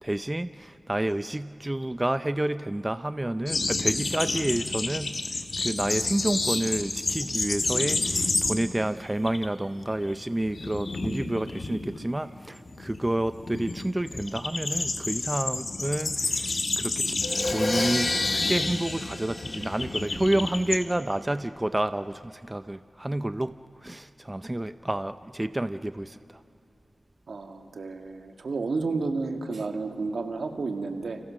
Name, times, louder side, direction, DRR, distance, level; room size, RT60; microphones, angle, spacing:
voice 1, 0.0-17.2 17.4-23.5 23.8-26.4, right 1 dB, 20° right, 11 dB, 0.5 m, -29 dB
sound 1, 3.5-8.8 9.1-9.5 9.8-20.8, left 3 dB, 55° left, 1.9 m, -30 dB
Crash cymbal, 17.2-20.2, left 2 dB, 35° left, 1.0 m, -31 dB
voice 2, 27.3-31.2, right 3 dB, 75° right, 4 dB, 2.0 m, -31 dB
29.5 x 25.0 x 6.4 m, 2.7 s
cardioid pair, 55°, 0 cm